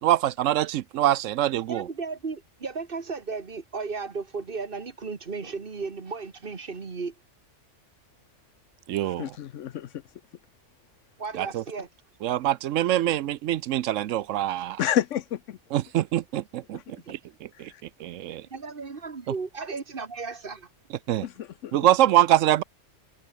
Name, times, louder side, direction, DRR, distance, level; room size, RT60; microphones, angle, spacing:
voice 1, 0.0-1.8 8.9-9.3 11.4-11.6 12.2-14.8 15.7-16.8 17.1-17.7 18.0-18.5 21.1-21.2 21.7-22.6, right 13 dB, 80° right, 1.0 m, -24 dB
voice 2, 1.7-7.1 11.2-11.9 18.5-20.7, right 4 dB, 45° right, 1.7 m, -35 dB
voice 3, 9.2-9.9 14.8-15.6 16.7-16.8 21.2-21.8, left 11 dB, 75° left, 1.1 m, -29 dB
omnidirectional pair, 1.3 m